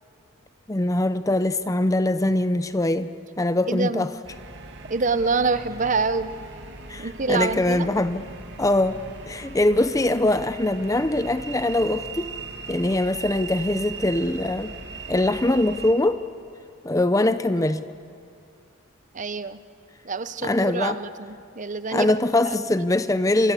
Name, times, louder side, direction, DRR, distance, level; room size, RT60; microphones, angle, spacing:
voice 1, 0.7-4.1 6.9-8.2 8.6-9.0 9.3-12.3 12.7-14.7 15.1-16.2 16.8-17.8 20.4-21.0 21.9-23.5, left 1 dB, 15° left, 12 dB, 0.6 m, -22 dB
voice 2, 3.7-4.1 4.9-6.3 7.0-7.9 17.6-17.7 19.1-19.6 20.0-22.1, right 4 dB, 35° right, 12 dB, 0.8 m, -26 dB
sound 1, 4.2-15.9, right 4 dB, 50° right, 2.7 m, -39 dB
28.5 x 24.5 x 8.4 m, 2.5 s
head